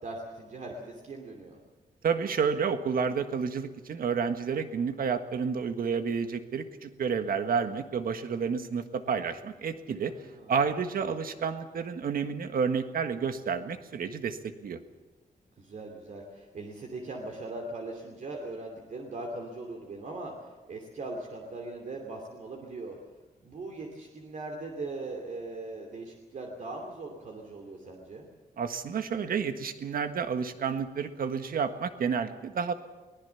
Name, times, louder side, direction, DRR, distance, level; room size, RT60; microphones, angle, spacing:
voice 1, 0.0-1.6 10.0-10.5 11.0-11.1 15.6-23.0 23.4-28.3, right 2 dB, 50° right, 2 dB, 2.9 m, -40 dB
voice 2, 2.0-10.1 10.5-14.8 28.6-32.7, right 6 dB, 70° right, 9 dB, 1.6 m, -30 dB
23.0 x 19.0 x 7.1 m, 1.2 s
wide cardioid pair, 175°, 16 cm